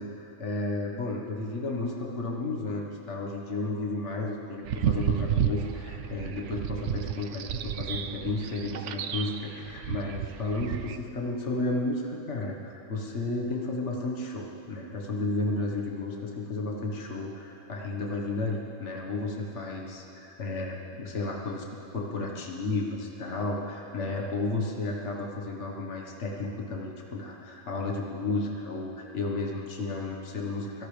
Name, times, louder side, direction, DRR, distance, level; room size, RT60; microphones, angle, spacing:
voice 1, 0.0-21.7 21.9-30.9, left 2 dB, 65° left, -1 dB, 1.8 m, -33 dB
sound 1, 4.6-11.0, right 9 dB, 70° right, 1.0 m, -31 dB
24.0 x 17.5 x 3.4 m, 3.0 s
omnidirectional pair, 1.3 m